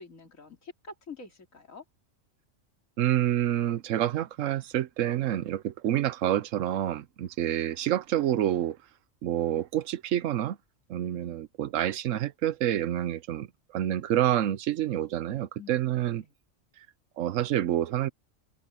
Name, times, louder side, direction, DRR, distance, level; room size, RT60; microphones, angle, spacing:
voice 1, 0.0-1.8 15.6-15.8 16.2-16.3, left 4 dB, 90° left, 3.2 m, -46 dB
voice 2, 3.0-8.8 9.2-10.6 10.9-13.5 13.7-16.2 17.2-18.1, right 12 dB, 75° right, 1.0 m, -28 dB
omnidirectional pair, 1.3 m